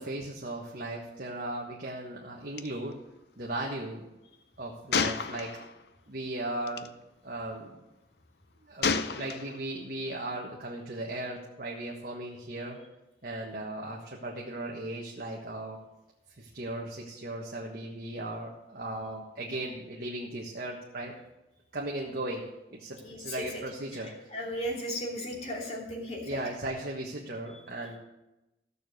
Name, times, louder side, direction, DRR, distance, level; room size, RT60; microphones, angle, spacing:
voice 1, 0.0-2.9 3.4-4.1 4.6-5.5 6.1-6.9 7.2-7.8 8.7-12.8 13.2-15.8 16.4-21.1 21.7-24.3 26.2-28.0, right 1 dB, 50° right, -2 dB, 1.4 m, -37 dB
Gunshot gunfire, 2.6-2.7 2.9-3.1 4.9-5.9 6.7-6.9 8.8-9.7, left 5 dB, 60° left, 0.6 m, -30 dB
voice 2, 23.0-23.6 23.9-26.5 27.5-27.6, equal, 35° left, -1 dB, 2.9 m, -36 dB
15.0 x 6.9 x 6.4 m, 0.97 s
head